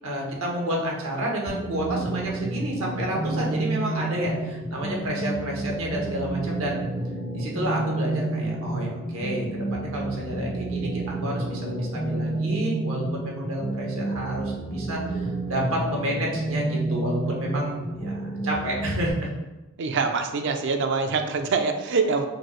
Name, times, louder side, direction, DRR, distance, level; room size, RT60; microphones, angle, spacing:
voice 1, 0.0-6.8 7.3-19.3, right 1 dB, 85° right, -2 dB, 1.1 m, -29 dB
sound 1, 1.5-19.1, right 2 dB, 5° left, 0.4 m, -30 dB
voice 2, 19.8-22.3, right 4 dB, 60° right, 6 dB, 0.5 m, -24 dB
5.1 x 2.0 x 4.5 m, 1.1 s
head